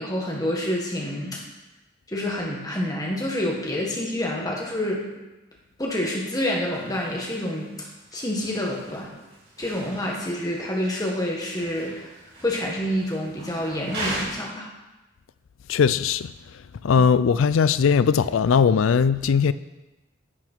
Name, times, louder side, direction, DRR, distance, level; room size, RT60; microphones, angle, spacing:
voice 1, 0.0-1.4 2.1-5.0 5.8-7.9 8.1-9.1 9.6-12.0 12.4-14.7, left 1 dB, 20° left, 1.6 m, -28 dB
sound 1, 6.3-14.2, right 1 dB, 55° right, 3.9 m, -39 dB
voice 2, 15.7-16.3 16.8-19.5, left 6 dB, 90° left, 0.4 m, -19 dB
10.5 x 6.3 x 4.5 m
head